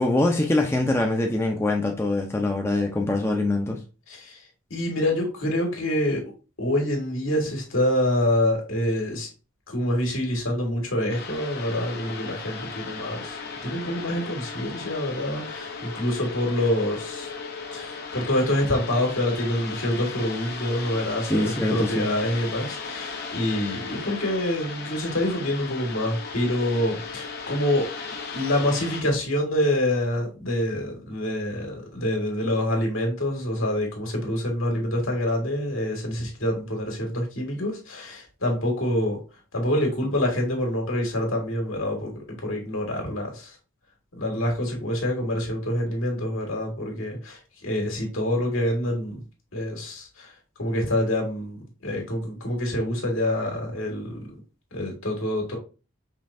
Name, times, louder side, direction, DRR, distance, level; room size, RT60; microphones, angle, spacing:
voice 1, 0.0-3.8 21.2-22.1, left 2 dB, 10° left, 0.5 m, -24 dB
voice 2, 4.1-4.4 4.7-6.2 6.6-9.3 9.7-17.3 17.7-27.9 28.3-39.2 39.5-43.6 44.1-49.2 49.5-50.3 50.6-54.2 54.7-55.6, left 1 dB, 75° left, 1.7 m, -26 dB
sound 1, 11.1-29.0, left 4 dB, 50° left, 0.8 m, -36 dB
5.2 x 3.3 x 2.6 m
head